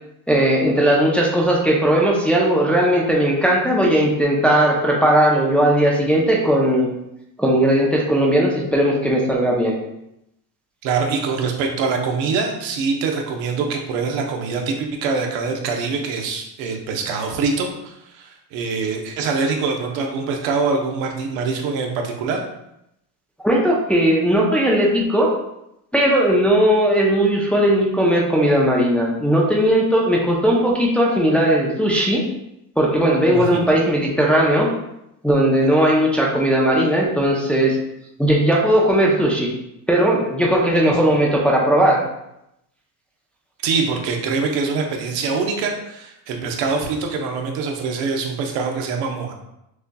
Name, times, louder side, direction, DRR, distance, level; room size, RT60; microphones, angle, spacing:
voice 1, 0.3-6.9 7.4-9.7 23.4-25.3 25.9-32.2 32.8-34.7 35.2-37.8 38.2-39.5 39.9-42.0, right 1 dB, 5° left, -3 dB, 0.6 m, -17 dB
voice 2, 10.8-22.4 33.3-33.6 43.6-49.3, right 4 dB, 75° right, 2 dB, 0.9 m, -24 dB
6.2 x 2.7 x 2.2 m, 0.83 s
cardioid pair, 115°, 46 cm